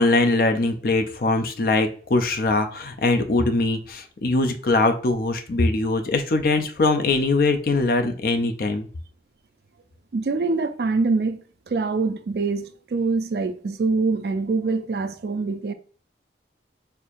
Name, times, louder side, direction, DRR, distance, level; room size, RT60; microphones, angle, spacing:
voice 1, 0.0-8.9, left 2 dB, 50° left, 0.5 m, -22 dB
voice 2, 10.1-11.4 11.7-15.7, right 3 dB, 60° right, 0.4 m, -24 dB
4.4 x 2.7 x 2.4 m
head